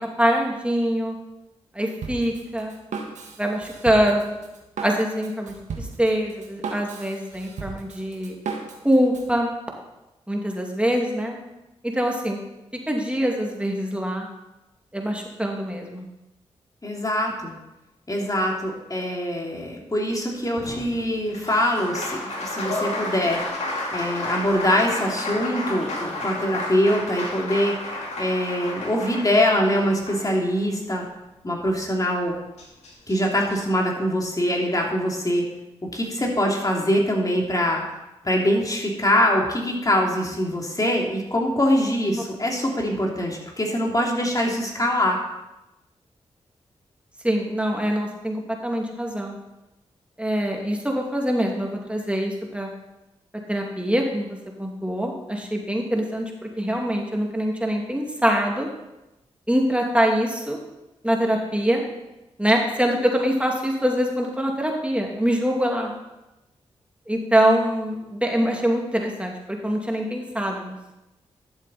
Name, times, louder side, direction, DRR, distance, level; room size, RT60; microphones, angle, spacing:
voice 1, 0.2-1.2 1.7-2.7 3.4-4.4 4.8-8.3 8.8-9.5 10.3-11.4 11.8-12.4 12.9-14.3 14.9-16.1 47.2-49.4 50.2-52.7 53.5-54.3 54.6-58.7 59.5-60.6 61.0-61.8 62.4-65.9 67.1-70.8, equal, 10° right, 1 dB, 2.5 m, -24 dB
Drum kit, 2.0-9.3, right 4 dB, 80° right, 1.4 m, -36 dB
voice 2, 16.8-17.6 18.1-23.6 23.9-27.8 28.2-31.0 31.4-32.4 33.1-35.5 35.8-37.8 38.2-45.2, equal, 30° left, -1 dB, 3.1 m, -23 dB
Applause, 20.5-30.8 32.2-32.3 32.6-33.6, left 2 dB, 65° left, 2.5 m, -32 dB
12.0 x 7.4 x 4.3 m, 0.97 s
supercardioid pair, 40°, 12 cm